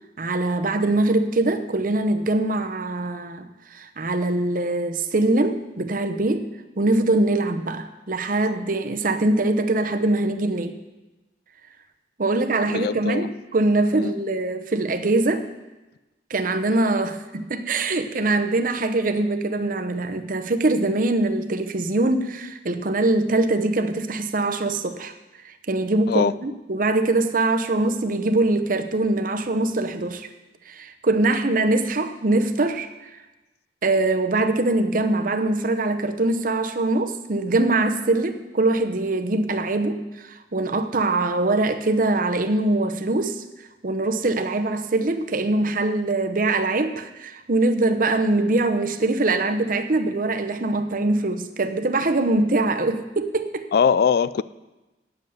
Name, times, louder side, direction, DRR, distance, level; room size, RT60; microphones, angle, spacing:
voice 1, 0.2-6.5 6.8-10.8 12.2-13.3 13.5-15.5 16.3-25.1 25.7-30.3 30.7-32.9 33.8-43.4 43.8-53.6, right 2 dB, 50° right, 0.8 m, -23 dB
voice 2, 12.7-13.3 13.9-14.1 26.1-26.3 53.7-54.4, left 6 dB, 60° left, 0.3 m, -21 dB
9.1 x 7.9 x 7.8 m
head